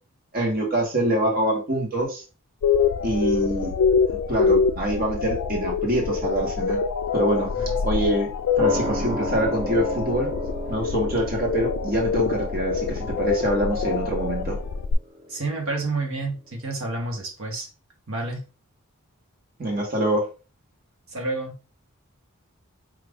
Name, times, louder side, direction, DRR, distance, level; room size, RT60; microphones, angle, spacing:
voice 1, 0.3-2.2 3.0-3.7 4.1-6.8 7.1-7.5 7.8-8.3 8.6-10.3 10.7-14.6 19.6-20.3, right 1 dB, 40° right, 0 dB, 1.1 m, -25 dB
sound 1, 2.6-14.9, left 5 dB, 80° left, 0.3 m, -25 dB
sound 2, 8.6-15.7 16.0-16.1, right 1 dB, 25° right, 0.7 m, -34 dB
voice 2, 15.3-17.7 18.1-18.4 21.1-21.5, right 3 dB, 70° right, 1 dB, 1.0 m, -29 dB
4.8 x 2.4 x 3.4 m, 0.33 s
head